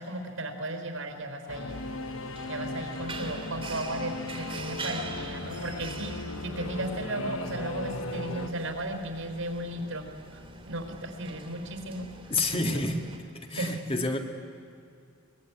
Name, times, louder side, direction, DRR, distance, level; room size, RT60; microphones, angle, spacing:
voice 1, 0.0-1.8 2.5-6.1 6.4-10.4 10.7-12.1 12.7-12.8 13.6-13.8, right 1 dB, 80° right, 4 dB, 4.2 m, -35 dB
Singing / Musical instrument, 1.5-8.5, left 2 dB, 75° left, 1.0 m, -37 dB
sound 1, 1.7-13.2, right 3 dB, 25° right, 2.6 m, -44 dB
voice 2, 12.3-13.0 13.3-14.2, left 2 dB, 25° left, 4 dB, 2.1 m, -28 dB
23.0 x 22.0 x 9.8 m, 2.4 s
head